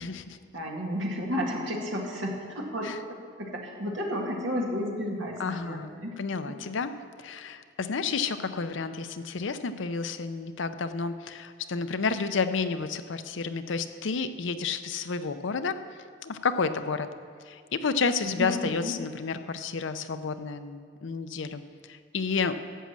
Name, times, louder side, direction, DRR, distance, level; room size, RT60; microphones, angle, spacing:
voice 1, 0.0-0.4 2.8-3.0 5.4-6.9 7.2-15.8 16.2-17.1 17.4-21.6 21.9-22.6, left 5 dB, 70° left, 10 dB, 0.6 m, -31 dB
voice 2, 0.5-2.9 3.4-6.2 18.2-18.5 18.8-18.9, equal, 75° right, -1 dB, 1.9 m, -32 dB
11.0 x 7.4 x 7.4 m, 2.1 s
head